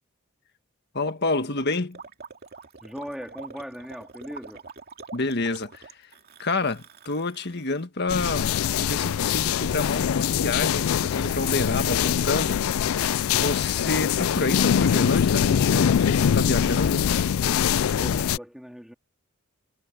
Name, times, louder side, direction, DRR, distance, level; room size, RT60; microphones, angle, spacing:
voice 1, 0.9-2.0 5.1-6.0 6.4-8.5 8.8-12.6 13.3-17.1, left 3 dB, 55° left, 1.6 m, -28 dB
Gurgling, 1.0-7.9, right 4 dB, 50° right, 2.4 m, -45 dB
voice 2, 2.8-4.6 17.9-18.9, equal, ahead, 3.6 m, -38 dB
sound 1, 8.1-18.4, left 8 dB, 85° left, 0.4 m, -23 dB
head